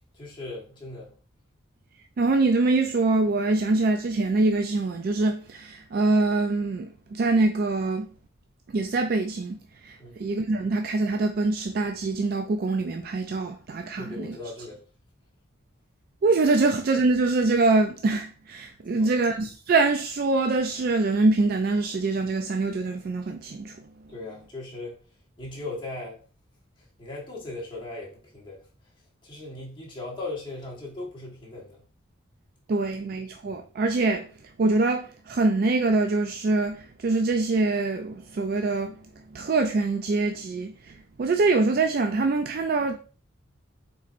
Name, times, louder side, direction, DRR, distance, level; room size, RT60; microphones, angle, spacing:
voice 1, 0.1-1.1 10.0-10.2 14.0-14.8 18.9-19.2 24.1-25.0 25.4-26.2 27.0-28.6 29.2-31.8, left 2 dB, 25° left, 1.3 m, -38 dB
voice 2, 2.2-8.1 8.7-9.6 9.8-14.4 16.2-23.8 32.7-34.3 34.6-38.9 39.3-43.0, right 3 dB, 45° right, 0.3 m, -24 dB
4.2 x 4.1 x 2.5 m
head